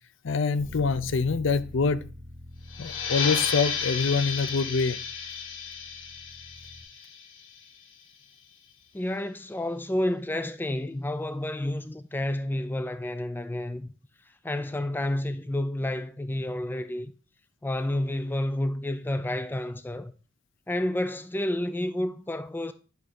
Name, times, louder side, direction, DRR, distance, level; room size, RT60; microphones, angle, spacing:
voice 1, 0.2-2.0 2.8-5.0, left 4 dB, 70° left, 0.5 m, -25 dB
Bass guitar, 0.6-6.8, left 1 dB, 45° right, 2.1 m, -46 dB
sound 1, 2.7-7.9, left 6 dB, 85° left, 1.5 m, -33 dB
voice 2, 8.9-13.9 14.4-17.1 17.6-20.1 20.7-22.7, left 1 dB, 10° left, 0.4 m, -30 dB
11.0 x 3.7 x 5.2 m
head